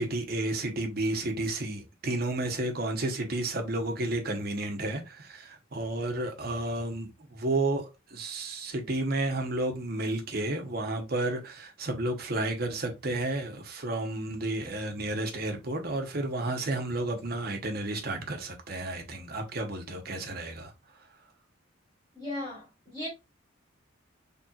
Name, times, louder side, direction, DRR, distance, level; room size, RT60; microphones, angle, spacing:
voice 1, 0.0-20.7, right 2 dB, 45° right, 1.0 m, -32 dB
voice 2, 22.1-23.1, left 1 dB, 20° left, 2.5 m, -37 dB
4.2 x 3.5 x 2.4 m
head